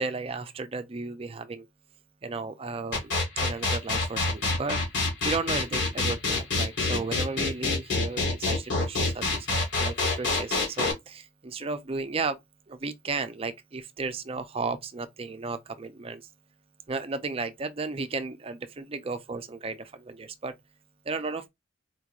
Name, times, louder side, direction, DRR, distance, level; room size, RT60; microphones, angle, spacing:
voice 1, 0.0-1.6 2.2-3.1 3.4-4.8 5.2-12.4 12.7-16.2 16.9-20.5 21.1-21.5, right 4 dB, 30° right, 0.5 m, -34 dB
sound 1, 2.9-10.9, left 3 dB, 70° left, 1.8 m, -26 dB
4.4 x 3.0 x 2.4 m
head